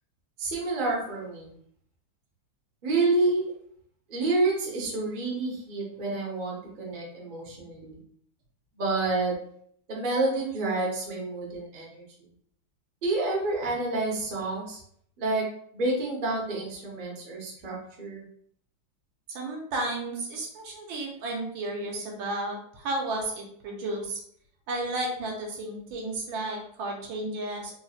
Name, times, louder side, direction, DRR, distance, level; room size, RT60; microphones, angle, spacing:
voice 1, 0.4-1.5 2.8-3.4 4.1-8.0 8.8-9.3 9.9-12.0 13.0-14.8 15.2-15.4 15.7-18.3, right 2 dB, 40° right, -3 dB, 0.7 m, -28 dB
voice 2, 19.3-24.2 24.7-27.7, right 2 dB, 80° right, 0 dB, 1.5 m, -33 dB
3.7 x 3.0 x 2.4 m, 0.64 s
omnidirectional pair, 2.2 m